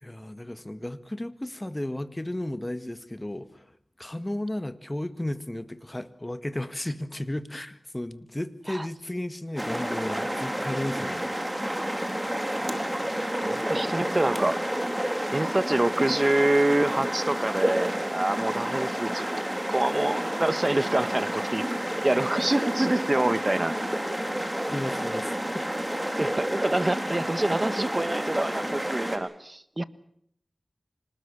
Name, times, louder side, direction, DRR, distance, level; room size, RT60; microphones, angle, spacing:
voice 1, 0.0-3.7 4.0-11.3 24.7-25.6, left 1 dB, 20° left, 11 dB, 1.8 m, -34 dB
sound 1, 9.6-29.2, equal, 10° right, 4.1 m, -30 dB
voice 2, 12.5-14.6 15.3-21.7 22.0-23.7 26.2-29.8, right 1 dB, 35° right, 14 dB, 1.3 m, -26 dB
26.0 x 20.0 x 7.1 m, 0.69 s
cardioid pair, 45°, 0 cm